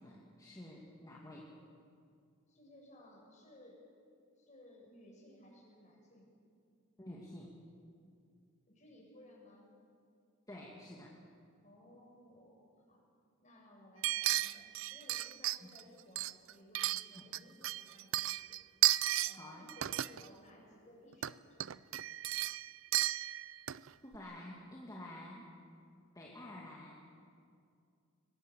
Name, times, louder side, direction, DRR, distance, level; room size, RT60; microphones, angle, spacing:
voice 1, 0.0-1.5 7.0-7.6 10.5-11.1 15.6-15.7 17.2-17.3 19.3-19.7 24.0-25.5 26.1-27.0, left 1 dB, 15° left, -3 dB, 2.4 m, -50 dB
voice 2, 2.5-3.8 4.4-6.3 8.7-9.7 11.6-13.0 13.4-18.6 19.2-21.8, left 1 dB, 35° left, -1 dB, 6.7 m, -59 dB
sound 1, 14.0-15.8 16.2-17.4 17.6-19.4 19.7-20.3 21.1-21.3 21.6-23.9 24.1-24.2, right 15 dB, 70° right, 0.5 m, -34 dB
23.0 x 19.5 x 8.4 m, 2.3 s
head